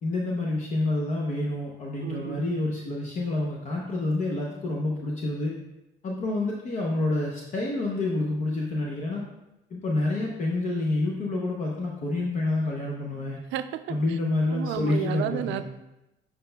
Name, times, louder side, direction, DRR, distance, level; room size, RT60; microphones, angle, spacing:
voice 1, 0.0-5.5 6.0-9.2 9.7-13.4 13.9-15.6, left 2 dB, 40° left, -2 dB, 0.8 m, -28 dB
voice 2, 2.0-2.5 13.5-14.2 14.5-15.6, right 11 dB, 70° right, 11 dB, 0.4 m, -32 dB
7.4 x 5.6 x 2.3 m, 0.94 s
cardioid pair, 140°, 19 cm